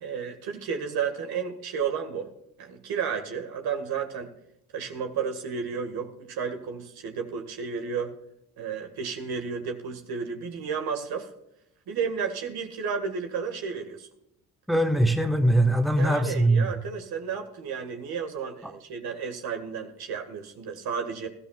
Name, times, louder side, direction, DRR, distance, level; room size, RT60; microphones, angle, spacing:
voice 1, 0.0-2.3 2.6-4.3 4.7-8.1 8.6-11.3 11.9-14.1 16.0-21.3, right 6 dB, 70° right, 5 dB, 2.0 m, -32 dB
voice 2, 14.7-16.7 18.6-18.7, right 1 dB, ahead, 4 dB, 1.7 m, -22 dB
19.5 x 13.5 x 2.5 m, 0.80 s
supercardioid pair, 60°, 39 cm